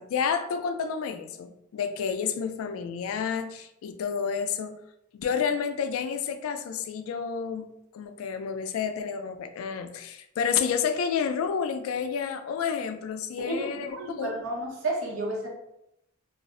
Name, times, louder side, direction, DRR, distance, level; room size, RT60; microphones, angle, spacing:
voice 1, 0.0-4.8 5.1-7.7 7.9-14.3, left 6 dB, 80° left, 8 dB, 0.3 m, -30 dB
voice 2, 13.4-15.5, right 2 dB, 65° right, -2 dB, 0.8 m, -32 dB
2.4 x 2.0 x 3.5 m, 0.82 s
head